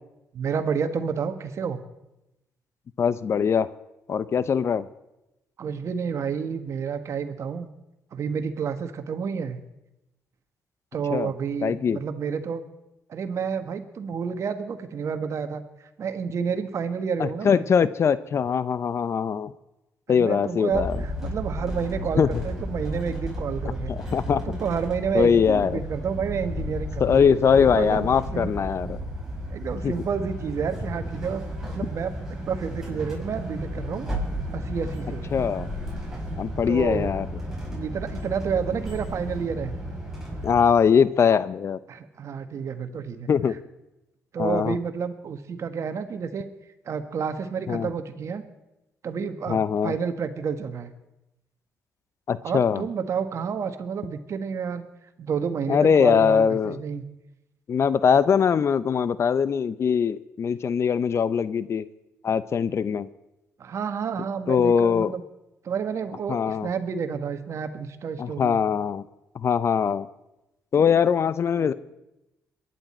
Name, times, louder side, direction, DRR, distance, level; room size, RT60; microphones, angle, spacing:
voice 1, 0.3-1.8 5.6-7.7 8.1-9.6 10.9-12.6 13.1-15.6 16.0-17.6 20.1-23.9 24.3-27.2 27.7-28.5 29.5-34.1 34.5-35.3 36.7-37.1 37.7-39.8 41.9-43.3 44.3-46.5 46.8-48.4 49.0-50.9 52.4-54.9 55.2-57.0 63.6-65.2 65.6-68.6, right 6 dB, 60° right, 9 dB, 1.4 m, -30 dB
voice 2, 3.0-3.7 4.1-4.9 11.1-11.3 11.6-12.0 17.2-19.5 20.1-21.0 22.2-22.4 23.9-24.4 25.1-25.8 27.0-29.0 29.8-29.9 35.3-35.7 36.4-37.3 40.4-41.8 43.3-43.6 44.4-44.8 47.7-47.9 49.5-49.9 52.3-52.8 55.7-56.8 57.7-61.9 62.2-63.1 64.5-65.1 66.3-66.7 68.2-69.0 69.3-70.1 70.7-71.7, left 7 dB, 55° left, 16 dB, 0.7 m, -22 dB
sound 1, 20.7-40.6, equal, 10° right, 6.0 m, -33 dB
22.5 x 10.5 x 4.4 m, 0.92 s
supercardioid pair, 70°, 6 cm